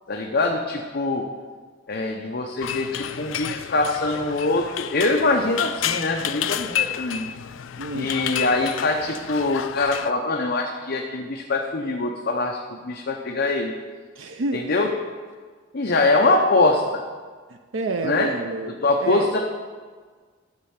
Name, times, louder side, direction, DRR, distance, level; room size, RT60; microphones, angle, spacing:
voice 1, 0.1-1.3 1.9-7.3 7.9-13.7 14.5-14.9 15.7-17.0 18.0-18.3 18.8-19.4, left 2 dB, 55° left, 1 dB, 0.7 m, -23 dB
sound 1, 2.6-10.1, left 10 dB, 80° left, 0.4 m, -30 dB
voice 2, 7.8-8.2 14.2-14.9 17.5-19.3, right 2 dB, 80° right, 5 dB, 0.6 m, -30 dB
12.5 x 4.3 x 7.3 m, 1.5 s
head